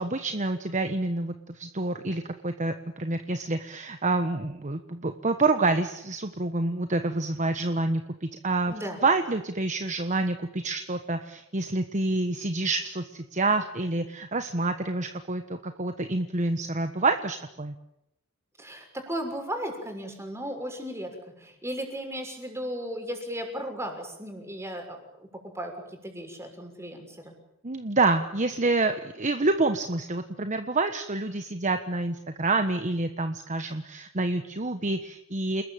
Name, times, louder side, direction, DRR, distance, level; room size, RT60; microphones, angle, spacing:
voice 1, 0.0-8.7 9.0-17.7 27.6-35.6, right 2 dB, 35° right, 8 dB, 1.3 m, -27 dB
voice 2, 8.7-9.0 18.6-21.1 21.4-27.3, equal, 15° right, 4 dB, 6.5 m, -36 dB
29.5 x 20.5 x 9.0 m, 0.83 s
head